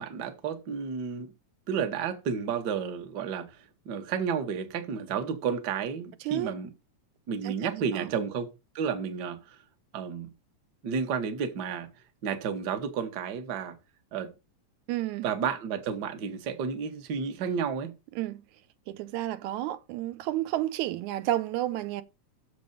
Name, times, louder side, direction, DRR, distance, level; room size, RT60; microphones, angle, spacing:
voice 1, 0.0-1.3 1.7-6.7 7.3-8.5 8.7-9.6 9.9-10.3 10.8-11.9 12.2-13.8 14.1-14.3 15.2-17.9, right 6 dB, 55° right, 1.1 m, -31 dB
voice 2, 6.2-6.5 7.4-8.1 14.9-15.3 18.1-18.4 18.9-22.0, right 14 dB, 90° right, 2.0 m, -31 dB
7.0 x 5.3 x 5.2 m
omnidirectional pair, 3.4 m